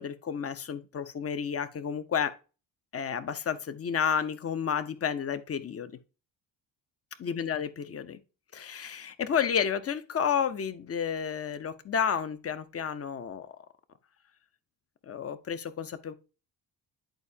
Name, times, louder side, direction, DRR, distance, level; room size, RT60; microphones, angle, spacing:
voice 1, 0.0-2.3 2.9-5.9 7.2-8.2 8.5-13.5 15.1-16.1, left 7 dB, 35° left, 0.8 m, -31 dB
10.5 x 4.3 x 2.8 m
cardioid pair, 85°, 42 cm